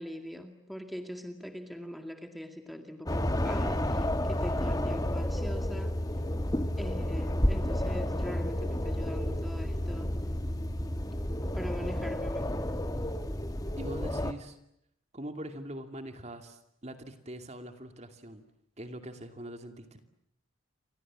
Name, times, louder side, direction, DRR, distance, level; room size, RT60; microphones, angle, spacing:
voice 1, 0.0-6.0 6.8-10.6 11.4-12.6, equal, ahead, 5 dB, 2.2 m, -42 dB
sound 1, 3.1-14.3, left 1 dB, 15° left, 1.4 m, -31 dB
voice 2, 11.8-12.2 13.8-14.6 15.1-18.4 18.8-20.0, right 1 dB, 30° right, 7 dB, 2.6 m, -42 dB
29.5 x 26.0 x 7.6 m, 0.78 s
head